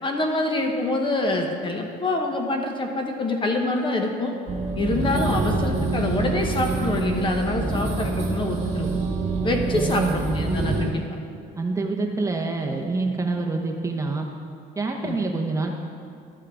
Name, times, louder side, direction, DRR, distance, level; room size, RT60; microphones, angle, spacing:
voice 1, 0.0-4.3 4.8-8.9 9.4-11.0 15.0-15.2, left 2 dB, 30° left, 3 dB, 1.1 m, -26 dB
sound 1, 4.5-10.9, right 3 dB, 40° right, 2.4 m, -26 dB
voice 2, 9.7-10.2 11.6-14.3 14.8-15.7, right 3 dB, 20° right, 1 dB, 0.9 m, -26 dB
12.5 x 5.7 x 4.8 m, 2.4 s
cardioid pair, 110°, 17 cm